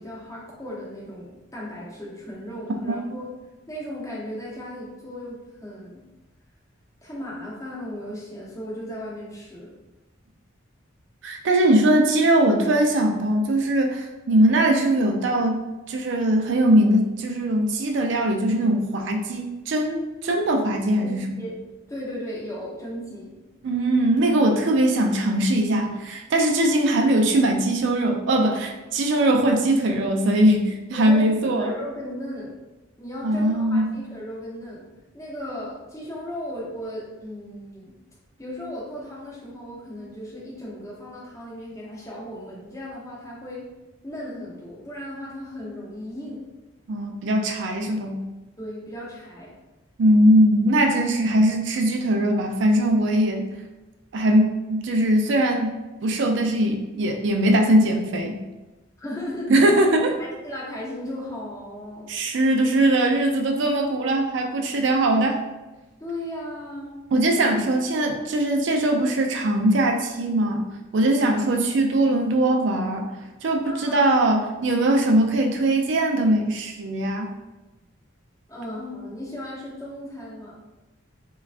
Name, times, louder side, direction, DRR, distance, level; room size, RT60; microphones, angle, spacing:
voice 1, 0.0-6.0 7.0-9.7 21.0-21.6 21.9-23.3 30.9-32.5 33.0-34.9 35.1-38.0 38.4-43.7 44.0-46.4 48.6-49.5 59.0-59.5 60.2-62.1 66.0-67.0 71.0-71.3 73.6-74.1 78.5-80.5, equal, 15° left, -6 dB, 0.7 m, -36 dB
voice 2, 11.2-15.6 15.9-21.4 23.6-31.7 33.2-33.9 46.9-48.2 50.0-53.5 54.1-58.4 59.5-60.2 62.1-65.4 67.1-70.6 70.9-73.1 73.4-77.3, right 1 dB, 60° right, 3 dB, 0.4 m, -21 dB
3.3 x 2.3 x 2.4 m, 1.1 s
head